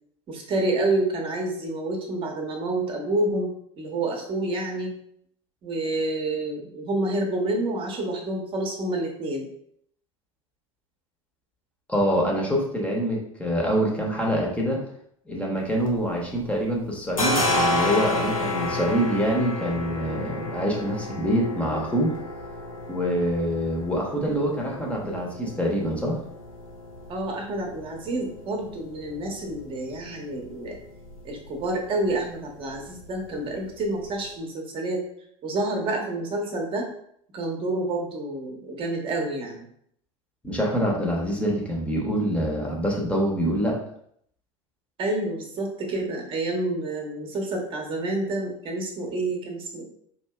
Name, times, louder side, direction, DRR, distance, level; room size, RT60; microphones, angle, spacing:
voice 1, 0.3-4.9 5.6-9.5 27.1-30.8 31.2-35.0 35.4-36.9 37.3-39.7 45.0-49.8, right 2 dB, 30° right, 1 dB, 0.9 m, -28 dB
voice 2, 11.9-14.8 15.3-22.1 22.9-26.2 40.4-43.8, equal, 5° left, -2 dB, 0.9 m, -25 dB
sound 1, 15.6-16.5 16.8-34.3, left 2 dB, 85° left, 0.7 m, -32 dB
4.5 x 2.7 x 2.3 m, 0.68 s
figure-of-eight pair, 75°, 17 cm